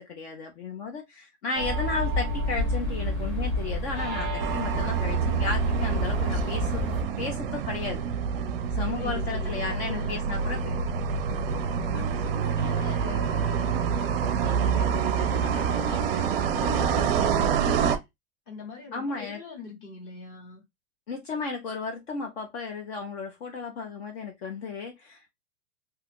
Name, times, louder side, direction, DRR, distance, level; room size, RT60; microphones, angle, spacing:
voice 1, 0.0-6.8 7.2-8.0 8.7-11.0 18.9-19.4 21.1-25.3, left 4 dB, 50° left, 0.8 m, -34 dB
sound 1, 1.5-7.0, equal, ahead, 0.8 m, -29 dB
sound 2, 4.4-18.0, right 7 dB, 45° right, 0.5 m, -27 dB
voice 2, 8.9-10.1 11.3-18.1 18.5-20.6, left 4 dB, 25° left, 1.1 m, -42 dB
2.9 x 2.4 x 3.5 m
supercardioid pair, 175°, 41 cm